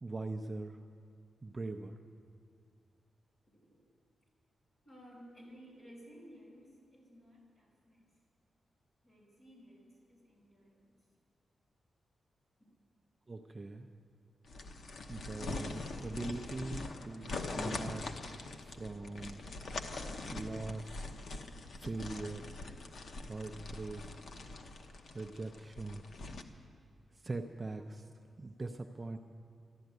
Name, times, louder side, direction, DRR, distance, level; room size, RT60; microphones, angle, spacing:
voice 1, 0.0-0.8 1.4-2.0 13.3-13.9 15.1-18.0 18.6-19.4 20.3-21.2 21.8-22.5 23.2-24.0 25.1-26.1 27.1-28.0 28.4-29.2, right 2 dB, 25° right, 5 dB, 0.6 m, -41 dB
voice 2, 4.8-8.1 9.0-11.0 12.6-12.7 27.7-28.2, equal, 35° left, -3 dB, 5.3 m, -57 dB
sound 1, 14.5-26.4, left 3 dB, 60° left, 1.0 m, -43 dB
13.0 x 11.5 x 9.3 m, 2.4 s
wide cardioid pair, 160°, 0 cm